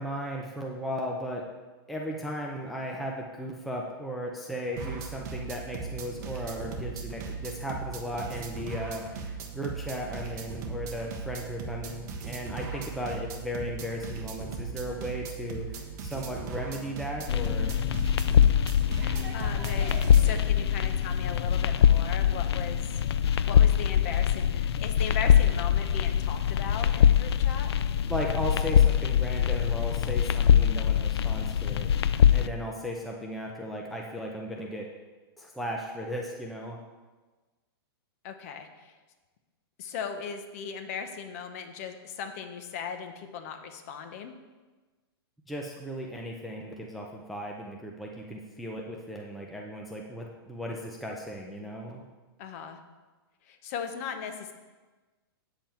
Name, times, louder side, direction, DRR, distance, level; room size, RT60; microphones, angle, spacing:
voice 1, 0.0-1.5 1.9-17.8 28.1-31.9 32.3-34.9 35.4-36.8 45.5-52.0, equal, ahead, -1 dB, 0.4 m, -36 dB
sound 1, 4.8-20.4, right 5 dB, 45° right, 1.2 m, -38 dB
sound 2, 17.3-32.5, left 9 dB, 85° left, 0.5 m, -23 dB
voice 2, 18.9-22.9 23.2-27.7 38.2-39.0 39.8-44.3 52.4-52.8 53.4-54.5, left 7 dB, 35° left, 7 dB, 0.8 m, -38 dB
8.8 x 7.6 x 4.4 m, 1.3 s
hypercardioid pair, 170°, 13 cm